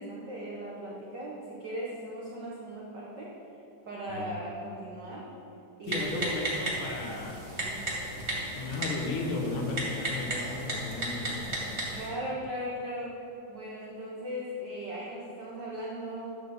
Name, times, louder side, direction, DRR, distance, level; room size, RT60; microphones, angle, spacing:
voice 1, 0.0-3.3 3.8-5.3 5.8-6.3 7.5-8.1 11.8-16.4, equal, 75° right, -5 dB, 0.9 m, -38 dB
voice 2, 5.9-7.4 8.5-11.6, left 3 dB, 80° left, 0 dB, 2.7 m, -34 dB
Typing, 5.9-12.1, right 1 dB, 25° right, 1.7 m, -34 dB
10.5 x 4.3 x 6.8 m, 2.8 s
omnidirectional pair, 3.5 m